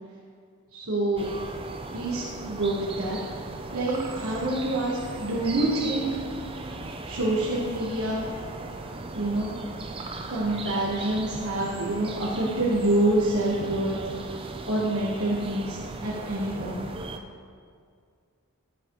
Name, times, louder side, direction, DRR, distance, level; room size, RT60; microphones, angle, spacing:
voice 1, 0.7-1.2 1.9-3.2 3.7-6.2 7.0-8.2 9.1-9.5 10.3-14.0 14.7-16.9, right 1 dB, 70° right, -6 dB, 1.3 m, -27 dB
sound 1, 1.2-17.2, right 2 dB, 25° right, 0.5 m, -37 dB
14.0 x 8.1 x 3.1 m, 2.2 s
head